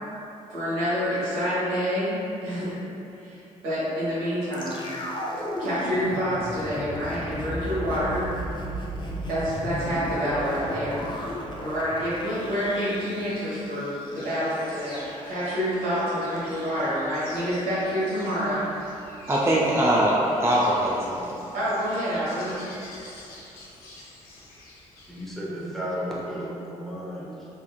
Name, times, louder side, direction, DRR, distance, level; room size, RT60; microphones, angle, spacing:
voice 1, 0.5-2.8 3.2-4.9 5.6-8.3 9.3-11.0 11.6-18.7 19.6-19.8 21.5-22.6, equal, 75° right, -10 dB, 1.2 m, -28 dB
sound 1, 4.5-14.7 14.9-15.0, equal, 30° left, 0.6 m, -34 dB
Insect, 14.1-25.3, left 1 dB, 70° left, 0.6 m, -46 dB
voice 2, 19.3-21.4, right 1 dB, 15° right, -5 dB, 0.5 m, -22 dB
voice 3, 25.1-27.5, equal, ahead, -7 dB, 0.9 m, -33 dB
3.4 x 2.9 x 2.3 m, 2.9 s
hypercardioid pair, 40°, 16 cm